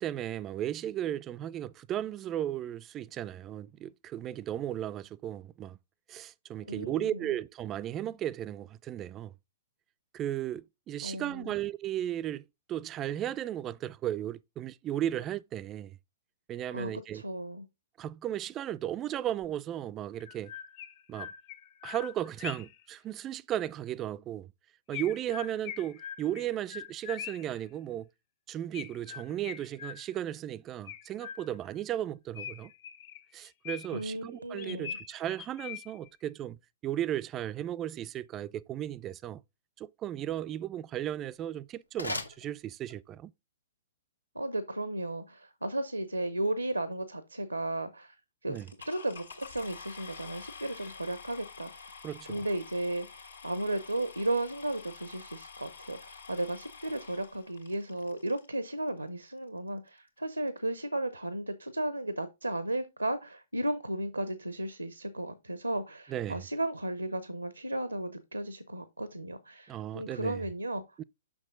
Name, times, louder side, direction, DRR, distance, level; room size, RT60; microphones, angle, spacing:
voice 1, 0.0-5.8 6.1-9.3 10.1-12.4 12.7-16.0 16.5-17.2 18.0-20.5 21.1-21.3 21.8-24.5 24.9-28.1 28.5-32.7 33.3-36.6 36.8-39.4 39.8-43.3 48.5-48.7 52.0-52.4 66.1-66.4 69.7-70.4 71.0-71.1, right 11 dB, 25° right, 0.3 m, -35 dB
voice 2, 6.6-7.2 11.0-11.5 16.7-17.7 33.9-35.0 44.3-48.1 48.4-48.6 48.9-52.0 52.3-70.8, right 1 dB, 85° right, 0.7 m, -34 dB
Chirp tweet, 19.4-19.5 20.2-22.8 24.9-27.6 28.7-30.3 30.9-31.7 32.3-34.1 34.6-36.1, left 9 dB, 40° left, 0.8 m, -43 dB
sound 1, 41.2-43.2, left 2 dB, 85° left, 1.1 m, -40 dB
sound 2, 48.5-58.5 59.3-59.4 59.9-60.0 60.2-60.5, left 5 dB, 70° left, 1.7 m, -49 dB
6.2 x 6.0 x 3.7 m
figure-of-eight pair, 115°, 0 cm